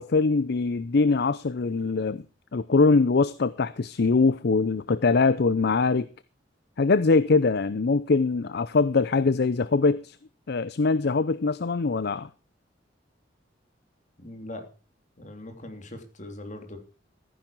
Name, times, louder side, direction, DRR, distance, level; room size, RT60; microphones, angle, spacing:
voice 1, 0.0-2.2 2.5-6.1 6.8-10.2 10.5-12.3, left 4 dB, 60° left, 16 dB, 0.6 m, -22 dB
voice 2, 14.2-14.7 15.2-16.8, left 1 dB, 40° left, 5 dB, 3.2 m, -40 dB
14.5 x 10.0 x 4.5 m, 0.36 s
head